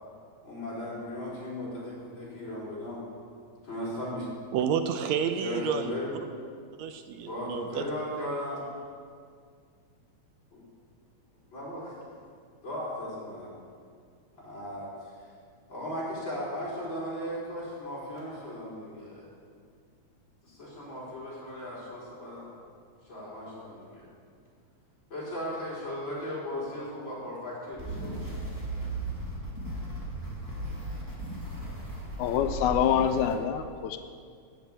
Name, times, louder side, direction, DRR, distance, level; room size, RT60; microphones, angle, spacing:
voice 1, 0.4-3.0 3.6-4.3 5.4-6.1 7.2-8.6 10.5-10.6 11.5-12.1 12.6-13.5 14.4-14.9 15.7-19.3 20.4-22.5 23.1-24.1 25.1-28.3, left 1 dB, 40° left, -7 dB, 5.0 m, -37 dB
voice 2, 4.5-5.9 6.8-7.9, right 7 dB, 80° right, 8 dB, 1.8 m, -30 dB
sound 1, 27.7-33.3, right 1 dB, 10° right, 1.9 m, -36 dB
voice 3, 32.2-34.0, left 9 dB, 85° left, 8 dB, 2.0 m, -26 dB
14.0 x 6.7 x 8.8 m, 2.2 s
omnidirectional pair, 3.3 m